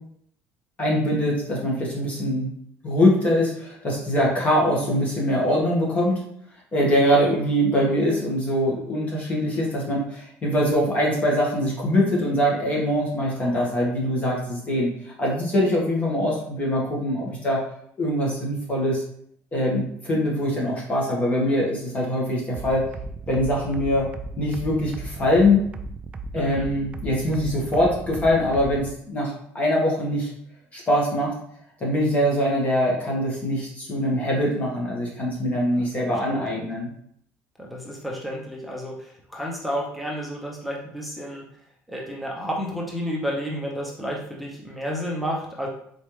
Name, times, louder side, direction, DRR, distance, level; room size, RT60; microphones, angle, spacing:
voice 1, 0.8-2.5 2.8-6.2 6.7-17.6 18.0-19.0 19.5-22.8 23.3-24.1 24.4-25.6 26.3-30.3 30.7-31.3 31.8-36.9, equal, 25° left, -3 dB, 1.5 m, -23 dB
voice 2, 13.2-13.9 26.3-26.7 35.5-35.9 36.3-36.6 37.6-41.5 41.9-45.7, equal, ahead, -2 dB, 0.8 m, -31 dB
sound 1, 22.5-28.9, right 3 dB, 20° right, 0.3 m, -35 dB
4.2 x 3.3 x 3.2 m, 0.67 s
cardioid pair, 140°, 5 cm